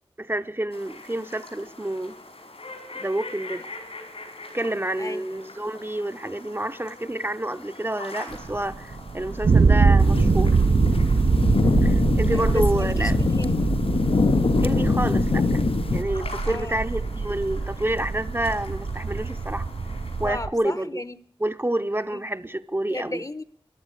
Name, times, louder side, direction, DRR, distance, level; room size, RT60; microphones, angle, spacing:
voice 1, 0.2-2.1 3.0-3.6 4.5-10.6 11.8-13.2 14.6-15.6 15.9-19.7 20.2-21.0 21.4-23.2, right 1 dB, 25° right, 0.7 m, -28 dB
sound 1, 0.7-20.3, left 2 dB, 85° left, 5.2 m, -43 dB
sound 2, 8.3-20.5, right 4 dB, 65° right, 0.6 m, -23 dB
sound 3, 10.0-16.0, left 4 dB, 70° left, 0.7 m, -24 dB
voice 2, 12.3-13.8 16.4-16.9 20.2-21.2 22.1-22.2 22.9-23.4, left 2 dB, 35° left, 0.8 m, -35 dB
14.5 x 11.5 x 8.3 m
wide cardioid pair, 60°, 10 cm